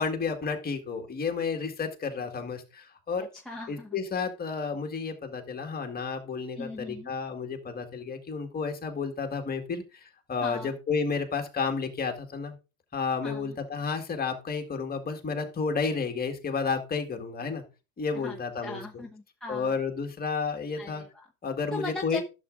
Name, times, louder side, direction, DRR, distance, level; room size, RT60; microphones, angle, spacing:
voice 1, 0.0-3.3 3.7-12.6 12.9-17.6 18.0-19.0 19.5-21.0 21.4-22.2, left 5 dB, 20° left, 4 dB, 1.9 m, -31 dB
voice 2, 3.2-4.0 6.6-7.1 10.4-10.7 13.2-13.6 18.1-19.7 20.8-21.3 21.7-22.2, left 2 dB, ahead, -2 dB, 0.9 m, -39 dB
11.5 x 7.6 x 2.5 m, 0.30 s
hypercardioid pair, 105°, 45 cm